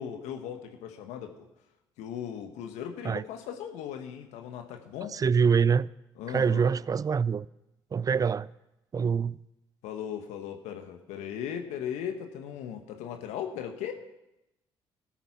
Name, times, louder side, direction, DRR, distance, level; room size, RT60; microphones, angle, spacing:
voice 1, 0.0-1.4 2.0-5.2 6.2-6.6 9.8-13.9, left 9 dB, 75° left, 1.3 m, -37 dB
voice 2, 5.1-5.9 6.3-7.5 7.9-8.5 8.9-9.4, right 6 dB, 30° right, 0.4 m, -25 dB
14.0 x 8.8 x 6.0 m
hypercardioid pair, 55°, 12 cm